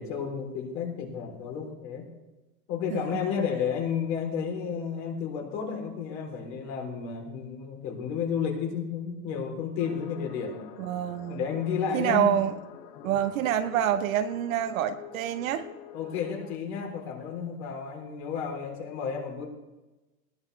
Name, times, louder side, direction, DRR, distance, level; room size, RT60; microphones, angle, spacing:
voice 1, 0.0-2.1 2.7-10.6 11.3-12.4 13.0-13.2 15.9-19.5, left 7 dB, 40° left, 1 dB, 3.8 m, -32 dB
sound 1, 9.8-16.6, left 10 dB, 80° left, 1.3 m, -46 dB
voice 2, 10.8-11.4 11.9-12.5 13.0-15.7, right 10 dB, 55° right, 9 dB, 1.1 m, -27 dB
20.0 x 19.0 x 3.4 m, 1.1 s
supercardioid pair, 170°, 49 cm